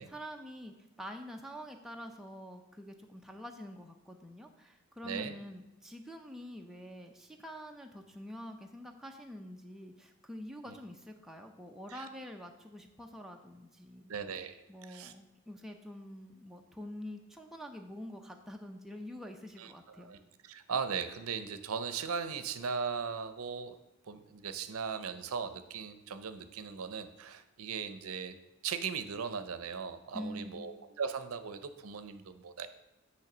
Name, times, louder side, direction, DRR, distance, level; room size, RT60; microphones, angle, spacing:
voice 1, 0.0-14.1 14.7-20.2 30.1-30.7, equal, ahead, 2 dB, 0.5 m, -46 dB
voice 2, 5.0-5.3 11.9-12.0 14.1-14.6 14.9-15.1 19.6-19.7 20.0-20.2 20.4-23.7 24.1-28.4 28.6-32.7, right 6 dB, 80° right, 11 dB, 0.6 m, -38 dB
8.7 x 3.2 x 5.9 m, 0.98 s
head